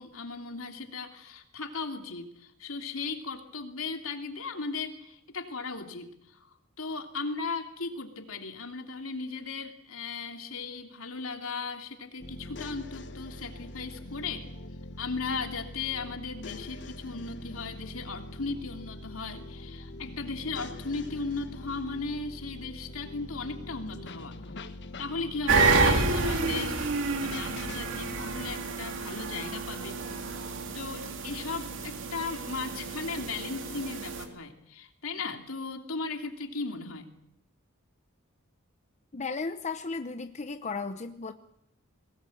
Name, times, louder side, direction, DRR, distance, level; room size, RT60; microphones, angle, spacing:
voice 1, 0.0-6.4 6.8-14.5 15.0-24.4 25.0-26.9 27.2-30.0 30.7-37.1, left 4 dB, 75° left, 5 dB, 2.9 m, -37 dB
sound 1, 12.2-28.6, left 1 dB, 55° left, 1.5 m, -43 dB
sound 2, 25.5-34.2, right 4 dB, 65° right, 2.9 m, -29 dB
voice 2, 39.1-41.3, left 4 dB, 35° left, 8 dB, 0.9 m, -35 dB
22.0 x 19.0 x 8.6 m, 0.75 s
head